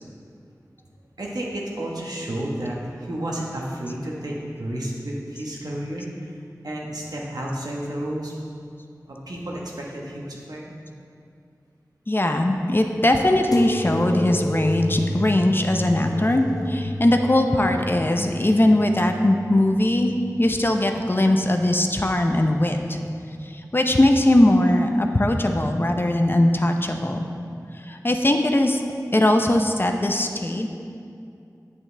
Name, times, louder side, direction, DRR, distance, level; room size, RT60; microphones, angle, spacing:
voice 1, 1.2-6.3 6.6-8.3 9.1-10.7, right 1 dB, 75° right, -3 dB, 1.3 m, -31 dB
voice 2, 12.1-20.1 20.4-23.0 23.4-27.3 27.8-28.8 29.1-30.7, left 1 dB, 35° left, 4 dB, 0.6 m, -20 dB
sound 1, 13.5-20.7 21.2-22.0 22.8-23.3 24.3-24.4, left 1 dB, 70° left, 0.7 m, -32 dB
8.5 x 7.3 x 3.4 m, 2.4 s
wide cardioid pair, 45°, 7 cm